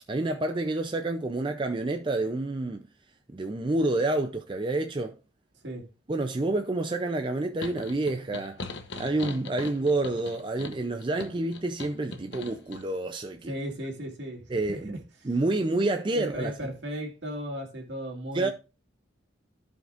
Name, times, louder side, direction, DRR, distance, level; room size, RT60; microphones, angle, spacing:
voice 1, 0.1-2.9 3.3-5.2 6.1-8.6 9.0-13.5 14.5-15.0 15.2-16.5 18.3-18.5, right 2 dB, 25° right, 0.4 m, -28 dB
voice 2, 5.5-5.9 13.5-15.3 16.1-18.5, equal, 65° right, 2.3 m, -36 dB
sound 1, 7.6-12.8, left 3 dB, 65° left, 1.0 m, -41 dB
15.0 x 5.2 x 2.5 m
head